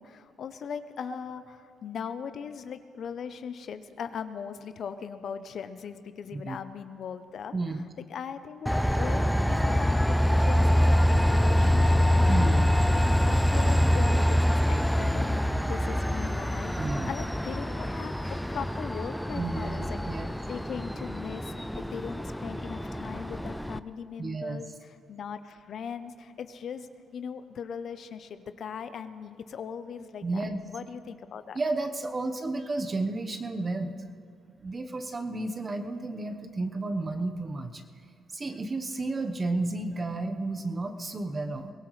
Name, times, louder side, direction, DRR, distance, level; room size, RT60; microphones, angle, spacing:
voice 1, 0.0-7.5 8.1-8.7 8.9-12.2 12.9-15.4 15.7-31.6, left 7 dB, 60° left, 11 dB, 0.7 m, -39 dB
voice 2, 7.5-7.8 12.3-12.8 16.8-17.1 19.3-20.3 24.2-24.6 30.2-30.6 31.5-33.9 34.6-37.8 38.3-41.7, right 2 dB, 30° right, 6 dB, 1.1 m, -32 dB
Train, 8.7-23.8, equal, ahead, 0.4 m, -25 dB
23.0 x 17.5 x 3.2 m, 2.3 s
cardioid pair, 90°, 0 cm